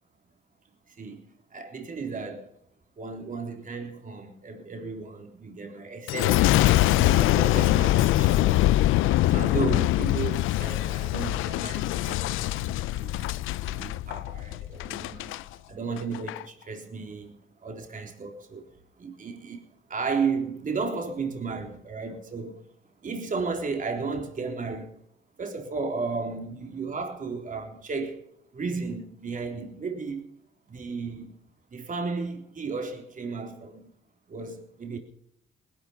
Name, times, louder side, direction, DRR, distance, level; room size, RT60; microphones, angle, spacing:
voice 1, 0.9-2.5 3.0-6.4 7.0-8.7 9.0-13.3 13.6-15.4 15.7-18.7 19.0-22.6 23.0-24.9 25.4-28.2 28.5-30.3 30.7-31.4 31.7-33.9 34.3-35.0, right 4 dB, 40° right, 3.8 m, -34 dB
Boom, 6.1-15.4 16.0-16.4, left 16 dB, 90° left, 0.5 m, -23 dB
20.0 x 12.5 x 5.8 m
cardioid pair, 90°, 20 cm